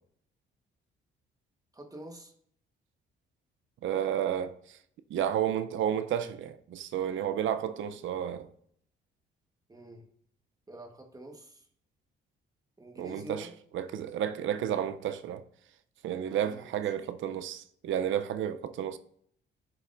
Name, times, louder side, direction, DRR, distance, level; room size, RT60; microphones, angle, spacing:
voice 1, 1.7-2.3 9.7-10.1 10.7-11.7 12.8-13.5 16.2-16.8, right 1 dB, 20° right, 1.4 m, -47 dB
voice 2, 3.8-4.8 5.1-8.5 13.0-15.4 16.0-19.0, right 10 dB, 75° right, 0.7 m, -32 dB
11.0 x 6.9 x 2.6 m
cardioid pair, 90°, 20 cm